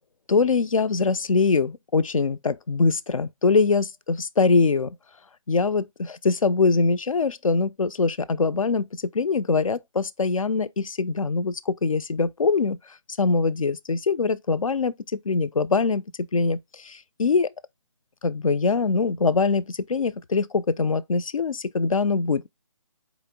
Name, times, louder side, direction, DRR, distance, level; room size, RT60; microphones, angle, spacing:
voice 1, 0.3-4.9 5.5-8.9 9.1-12.8 13.2-16.0 16.3-17.5 18.2-22.5, left 4 dB, 80° left, 0.4 m, -23 dB
4.4 x 3.0 x 3.4 m
figure-of-eight pair, 145°, 17 cm